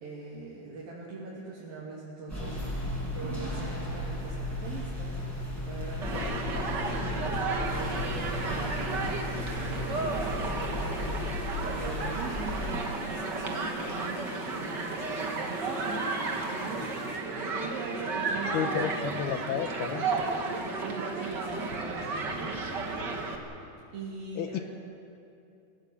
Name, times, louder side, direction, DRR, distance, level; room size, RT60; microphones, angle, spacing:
voice 1, 0.0-5.2 5.5-16.9 17.4-19.0 20.5-22.6 23.9-24.6, right 3 dB, 65° right, -6 dB, 4.5 m, -42 dB
sound 1, 2.3-12.8, left 1 dB, 5° left, 6.1 m, -35 dB
Human group actions, 6.0-23.3, right 3 dB, 40° right, 1.6 m, -33 dB
sound 2, 7.6-17.2, left 4 dB, 60° left, 3.2 m, -52 dB
voice 2, 18.5-20.0 24.4-24.6, left 9 dB, 80° left, 8 dB, 2.8 m, -32 dB
29.0 x 18.0 x 7.1 m, 2.6 s
omnidirectional pair, 4.5 m